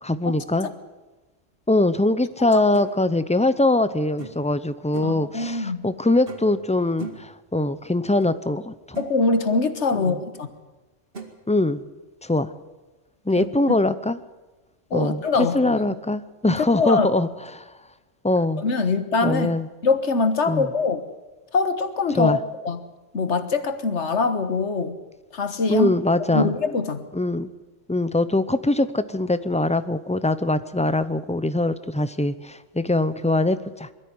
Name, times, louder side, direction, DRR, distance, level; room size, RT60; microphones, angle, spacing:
voice 1, 0.0-0.7 1.7-9.0 10.0-10.2 11.5-11.8 12.2-12.5 13.3-14.2 14.9-15.2 15.5-17.3 17.5-17.6 18.2-18.6 19.2-19.7 20.5-20.7 22.2-22.4 25.7-26.5 27.1-27.5 27.9-33.9, left 2 dB, 10° left, 13 dB, 0.4 m, -22 dB
sound 1, 2.7-2.9 4.2-4.5 4.9-5.2 6.3-6.6 7.0-7.3 8.2-8.3 8.7-9.1 10.3-10.5 11.1-11.3, right 4 dB, 50° right, 2.5 m, -38 dB
voice 2, 5.0-5.8 9.0-10.5 13.4-13.8 14.9-15.8 16.5-17.1 18.6-19.5 19.8-21.0 21.5-22.4 22.6-22.8 23.1-25.0 25.3-25.9 26.3-27.1, left 4 dB, 70° left, 10 dB, 1.7 m, -23 dB
22.0 x 13.5 x 9.5 m, 1.2 s
omnidirectional pair, 1.3 m